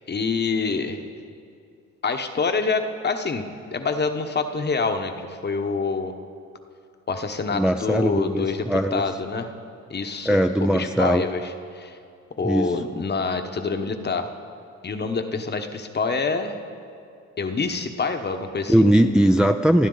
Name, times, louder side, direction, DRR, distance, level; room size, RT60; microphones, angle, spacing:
voice 1, 0.1-1.1 2.0-6.1 7.1-9.5 9.9-12.0 12.4-14.3 14.8-16.6 17.4-18.9, left 4 dB, 35° left, 6 dB, 1.1 m, -26 dB
voice 2, 7.5-9.1 10.3-11.3 12.4-12.8 18.7-19.9, right 1 dB, 5° right, 5 dB, 0.5 m, -20 dB
27.5 x 10.0 x 4.0 m, 2.4 s
cardioid pair, 90°, 30 cm